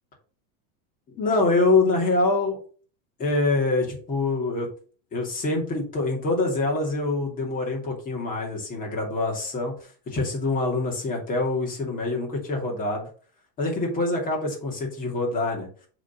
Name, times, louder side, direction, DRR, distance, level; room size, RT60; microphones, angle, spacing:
voice 1, 1.2-2.6 3.2-4.7 5.1-9.7 10.1-13.1 13.6-15.7, left 2 dB, 20° left, -1 dB, 2.6 m, -25 dB
7.2 x 4.1 x 5.7 m, 0.41 s
supercardioid pair, 165°, 41 cm